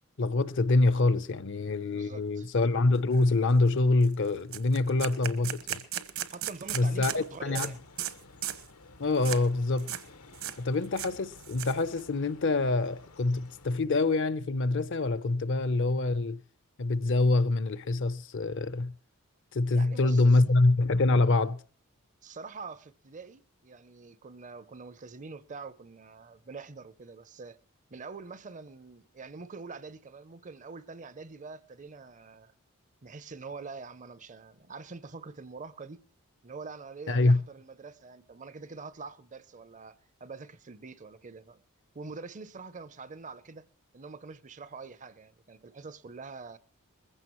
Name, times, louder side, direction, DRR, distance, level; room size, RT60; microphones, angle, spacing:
voice 1, 0.2-5.8 6.7-7.7 9.0-9.9 10.6-16.4 16.8-18.9 19.5-21.6 37.1-37.4, left 2 dB, 55° left, 0.7 m, -25 dB
voice 2, 1.9-2.5 6.3-7.8 19.7-20.4 22.2-27.6 27.9-32.5 33.0-36.0 36.4-41.6 41.9-43.7 43.9-46.6, right 4 dB, 35° right, 0.6 m, -45 dB
sound 1, 3.1-3.2 3.6-3.7 4.0-4.1 4.5-7.2 7.5-7.7 8.0-8.1 8.4-8.7 9.2-9.4 9.8-10.0 10.3-10.6 10.8-12.0, right 11 dB, 65° right, 1.1 m, -36 dB
sound 2, 6.6-13.8, left 3 dB, 85° left, 1.3 m, -54 dB
21.0 x 15.5 x 3.1 m
head